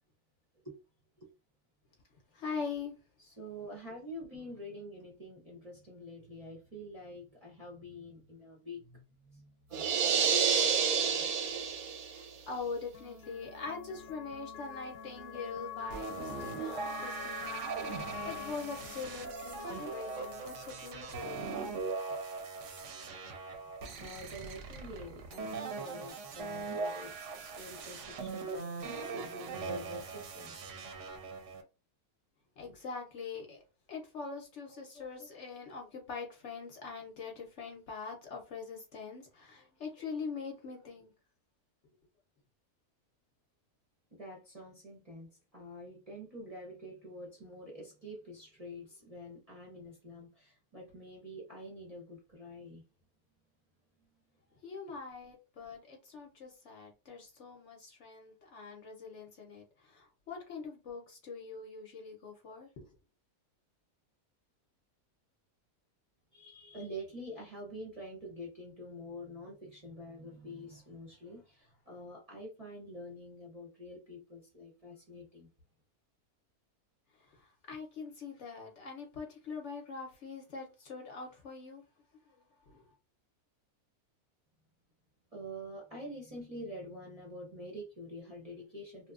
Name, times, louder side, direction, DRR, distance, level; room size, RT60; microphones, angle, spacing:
voice 1, 2.3-3.0 12.1-21.8 22.2-22.3 32.6-33.6 33.9-41.1 54.6-62.9 77.3-81.8 82.3-82.8, left 5 dB, 60° left, 0.9 m, -43 dB
voice 2, 3.2-10.7 11.0-11.7 24.0-30.6 44.1-52.8 66.3-75.5 85.3-89.1, equal, 35° right, 0.7 m, -47 dB
sound 1, 9.7-12.2, right 7 dB, 85° right, 1.1 m, -28 dB
sound 2, 11.5-21.8, left 8 dB, 85° left, 1.1 m, -47 dB
sound 3, 15.9-31.6, right 4 dB, 65° right, 0.9 m, -40 dB
3.0 x 2.2 x 2.4 m
omnidirectional pair, 1.5 m